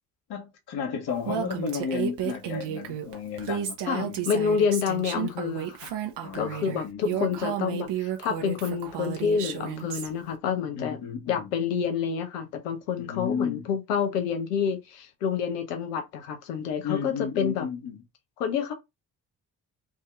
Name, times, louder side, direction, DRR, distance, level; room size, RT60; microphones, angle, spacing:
voice 1, 0.3-4.3 6.2-7.4 10.7-11.5 13.0-13.7 16.8-18.0, left 6 dB, 55° left, 1.2 m, -33 dB
Female speech woman speaking, 1.2-10.1, right 10 dB, 60° right, 1.1 m, -32 dB
voice 2, 3.9-5.9 6.3-11.0 11.3-17.7 18.4-18.7, left 7 dB, 85° left, 0.8 m, -28 dB
3.6 x 2.7 x 3.3 m
hypercardioid pair, 40°, 46 cm